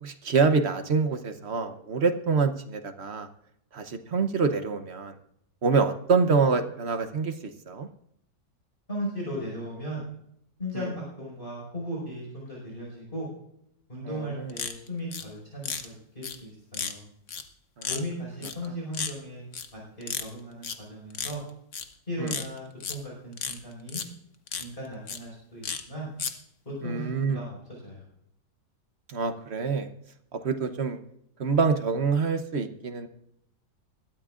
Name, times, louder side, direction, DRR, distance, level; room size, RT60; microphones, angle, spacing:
voice 1, 0.0-3.3 3.7-5.1 5.6-7.9 10.7-10.9 14.0-14.5 17.8-17.9 22.2-22.3 26.8-27.4 29.1-29.9 30.3-31.0 31.4-33.1, right 5 dB, 45° right, 8 dB, 0.9 m, -26 dB
voice 2, 8.9-10.0 10.6-13.3 13.9-17.0 17.9-19.4 19.7-21.4 22.1-24.0 24.6-26.1 26.7-27.6 27.8-28.0, equal, 30° left, -4 dB, 5.4 m, -37 dB
sound 1, 14.5-15.2 15.6-15.8 16.2-16.3 16.7-16.9 17.3-17.4 17.8-18.0 18.4-18.7 18.9-19.1 19.5-19.7 20.0-20.3 20.6-20.7 21.1-21.3 21.7-21.8 22.3-22.9 23.4-23.6 23.9-24.0 24.5-24.6 25.1-25.2 25.6-25.8 26.2-26.3, left 7 dB, 50° left, 1.2 m, -32 dB
21.0 x 13.0 x 2.5 m, 0.74 s
omnidirectional pair, 2.0 m